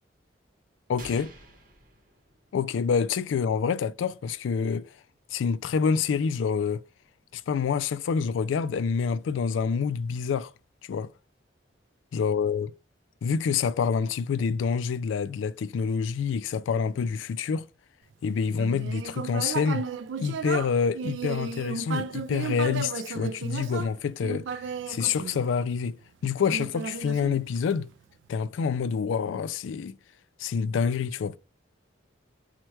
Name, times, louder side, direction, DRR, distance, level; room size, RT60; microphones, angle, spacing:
voice 1, 0.9-1.3 2.5-4.9 5.3-6.8 7.3-10.5 10.9-11.1 12.1-12.7 13.2-17.7 18.2-19.9 20.2-24.6 24.9-26.0 26.2-27.9 28.3-29.9 30.4-31.4, left 6 dB, 85° left, 0.3 m, -27 dB
sound 1, 1.0-2.9, right 1 dB, 45° right, 0.8 m, -48 dB
Human voice, 18.5-25.9 26.5-27.9, right 5 dB, 75° right, 0.3 m, -34 dB
4.3 x 2.2 x 4.5 m
head